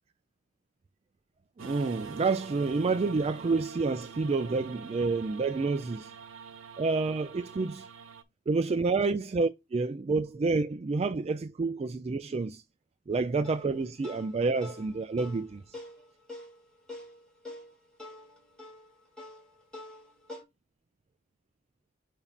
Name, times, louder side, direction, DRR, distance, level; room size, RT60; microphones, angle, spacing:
voice 1, 1.6-6.1 6.8-7.8 8.5-12.6 13.1-15.6, right 3 dB, 30° right, 0.3 m, -29 dB
sound 1, 1.6-8.2, right 6 dB, 85° right, 0.9 m, -45 dB
sound 2, 13.4-20.4, left 1 dB, 5° left, 1.9 m, -47 dB
7.0 x 2.7 x 5.4 m
head